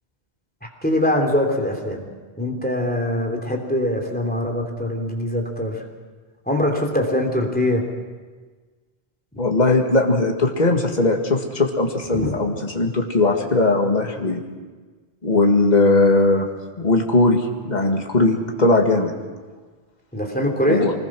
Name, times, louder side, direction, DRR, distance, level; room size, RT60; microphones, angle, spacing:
voice 1, 0.8-2.0 2.4-5.8 6.5-7.8 12.1-12.3 20.1-20.9, left 1 dB, 10° left, 2 dB, 3.2 m, -22 dB
voice 2, 9.4-14.4 15.2-16.5 16.8-19.1 20.7-20.9, left 2 dB, 45° left, 2 dB, 2.0 m, -19 dB
25.0 x 20.0 x 6.2 m, 1.4 s
omnidirectional pair, 1.1 m